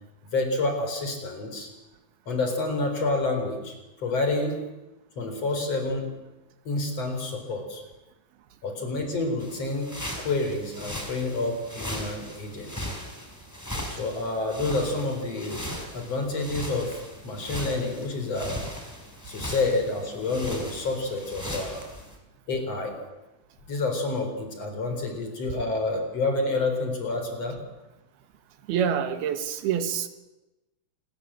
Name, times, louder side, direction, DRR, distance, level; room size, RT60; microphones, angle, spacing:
voice 1, 0.2-1.7 2.3-4.6 5.2-6.1 6.7-7.8 8.6-9.9 10.2-12.9 14.0-15.6 15.9-18.6 19.3-21.8 22.5-23.0 23.7-27.6, left 2 dB, 40° left, 5 dB, 5.2 m, -28 dB
sound 1, 9.4-22.2, equal, 5° left, 3.9 m, -38 dB
voice 2, 28.7-30.1, right 8 dB, 80° right, 9 dB, 3.4 m, -26 dB
28.0 x 21.0 x 7.7 m, 1.0 s
omnidirectional pair, 4.4 m